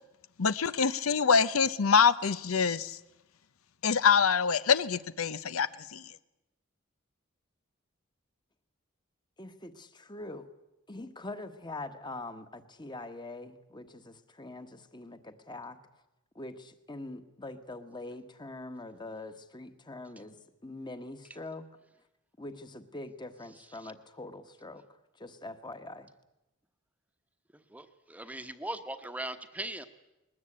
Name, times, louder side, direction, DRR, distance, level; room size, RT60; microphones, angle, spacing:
voice 1, 0.4-3.0 3.8-6.1, left 6 dB, 90° left, 0.7 m, -25 dB
voice 2, 9.4-10.5 10.9-15.8 16.3-21.7 22.4-26.1, left 2 dB, 20° left, 1.3 m, -43 dB
voice 3, 27.5-29.8, right 1 dB, 5° right, 1.0 m, -39 dB
21.0 x 20.0 x 8.7 m
head